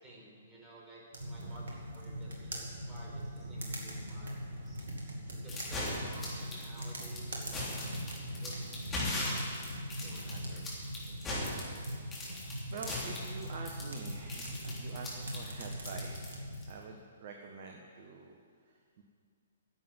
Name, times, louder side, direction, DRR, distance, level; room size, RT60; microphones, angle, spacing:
voice 1, 0.0-4.9 5.3-7.9 8.4-9.4 10.0-10.6 11.0-11.2, right 1 dB, 15° right, -3 dB, 4.3 m, -54 dB
sound 1, 1.1-16.6, equal, 65° right, 2.4 m, -41 dB
sound 2, 5.5-16.7, left 2 dB, 15° left, 3.5 m, -39 dB
voice 2, 10.3-10.7 11.7-12.2 12.7-16.3 16.7-18.4 18.6-19.0, right 5 dB, 45° right, 2 dB, 1.2 m, -47 dB
11.0 x 7.9 x 9.5 m, 2.1 s
figure-of-eight pair, 120°, 0 cm